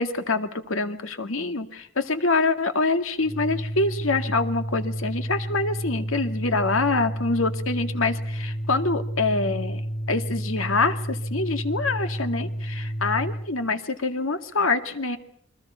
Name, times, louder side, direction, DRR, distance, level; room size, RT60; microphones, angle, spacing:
voice 1, 0.0-9.8 10.1-15.2, left 3 dB, 90° left, 8 dB, 2.0 m, -25 dB
Organ, 3.2-13.5, equal, 50° left, 3.4 m, -31 dB
28.5 x 23.5 x 5.6 m, 0.68 s
head